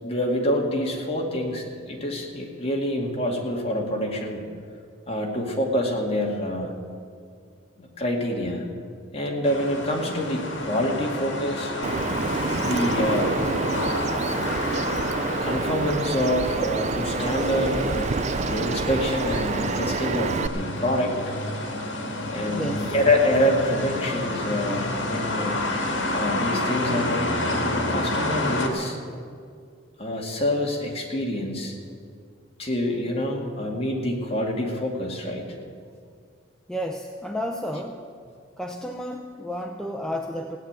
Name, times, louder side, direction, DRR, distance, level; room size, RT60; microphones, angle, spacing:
voice 1, 0.0-4.4 5.1-6.7 7.8-8.6 9.1-11.7 12.6-13.3 15.4-17.9 18.5-21.2 22.3-25.6 26.1-29.0 30.0-31.7 32.6-35.5, left 1 dB, 30° left, 0 dB, 2.3 m, -26 dB
sound 1, 9.4-28.7, left 2 dB, 70° left, 2.3 m, -29 dB
Bird vocalization bird call bird song, 11.8-20.5, right 4 dB, 35° right, 0.4 m, -28 dB
voice 2, 22.6-22.9 36.7-38.0 38.6-40.6, equal, 5° left, 2 dB, 0.6 m, -31 dB
16.5 x 9.2 x 9.0 m, 2.1 s
head